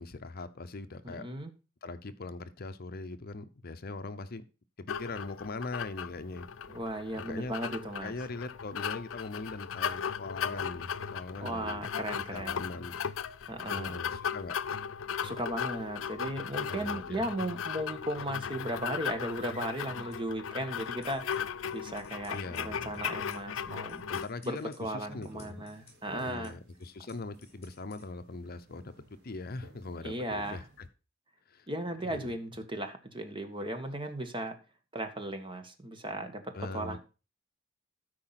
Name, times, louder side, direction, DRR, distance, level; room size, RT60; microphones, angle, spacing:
voice 1, 0.0-1.2 1.8-4.4 4.8-6.5 7.2-7.6 8.0-11.9 12.3-13.0 13.7-14.8 16.6-17.2 22.3-23.0 24.1-25.6 26.2-28.9 29.2-30.9 31.5-31.7 32.0-32.4 36.5-37.0, left 3 dB, 50° left, 0.8 m, -41 dB
voice 2, 1.0-1.5 6.7-8.1 11.4-12.7 13.5-14.0 15.2-21.2 21.7-24.0 24.4-26.6 30.0-30.6 31.7-34.5 34.9-37.0, right 1 dB, 25° right, 1.4 m, -36 dB
sound 1, 4.9-24.3, left 7 dB, 85° left, 0.5 m, -37 dB
sound 2, 19.9-28.0, left 4 dB, 35° left, 6.1 m, -62 dB
sound 3, 25.0-30.9, right 1 dB, 55° right, 3.0 m, -54 dB
13.0 x 4.9 x 5.8 m
head